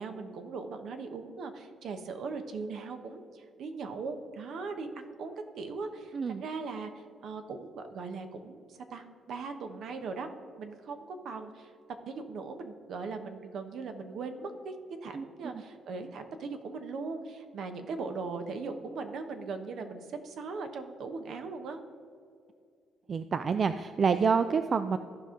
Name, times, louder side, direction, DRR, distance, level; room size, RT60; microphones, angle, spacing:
voice 1, 0.0-10.3 10.6-11.7 12.1-14.7 15.0-21.8, right 4 dB, 70° right, 7 dB, 0.9 m, -39 dB
voice 2, 23.1-25.0, right 5 dB, 45° right, 10 dB, 0.3 m, -27 dB
14.5 x 5.2 x 3.7 m, 2.3 s
cardioid pair, 90°, 0 cm